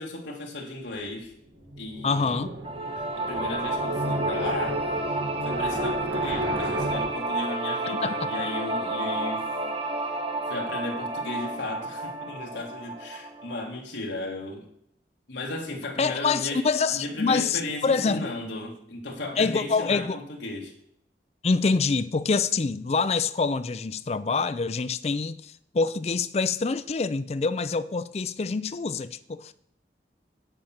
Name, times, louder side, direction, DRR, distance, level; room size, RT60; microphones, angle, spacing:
voice 1, 0.0-1.3 1.8-2.4 3.0-4.8 5.1-5.2 5.4-9.5 10.5-14.7 15.3-20.7, left 2 dB, 85° left, 1.7 m, -35 dB
sound 1, 1.5-7.1, right 1 dB, 85° right, 1.8 m, -33 dB
voice 2, 2.0-2.5 8.0-8.2 16.0-18.3 19.4-20.2 21.4-29.5, left 4 dB, 35° left, 0.4 m, -26 dB
sound 2, 2.6-13.7, right 2 dB, 30° right, 1.1 m, -31 dB
9.1 x 5.7 x 7.3 m
head